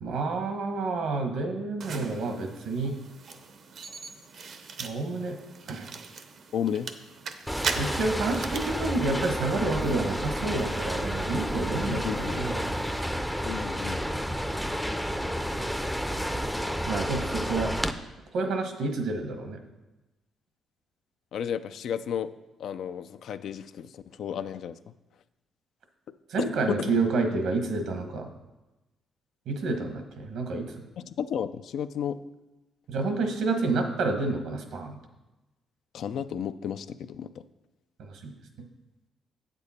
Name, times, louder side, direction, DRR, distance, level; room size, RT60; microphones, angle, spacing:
voice 1, 0.0-3.0 4.8-5.4 5.7-5.9 7.7-12.7 16.9-17.7 18.3-19.6 26.3-28.3 29.5-30.7 32.9-34.9 38.2-38.3, right 3 dB, 75° right, 5 dB, 1.2 m, -29 dB
sound 1, 1.8-13.0, right 5 dB, 60° right, 0.7 m, -41 dB
voice 2, 6.5-6.9 11.9-12.4 13.4-14.1 21.3-22.3 22.6-24.8 26.4-27.0 31.0-32.2 35.9-37.3, left 8 dB, 70° left, 12 dB, 0.4 m, -33 dB
sound 2, 7.5-17.9, equal, ahead, 0.5 m, -30 dB
8.1 x 6.8 x 4.2 m, 1.0 s
cardioid pair, 90°, 0 cm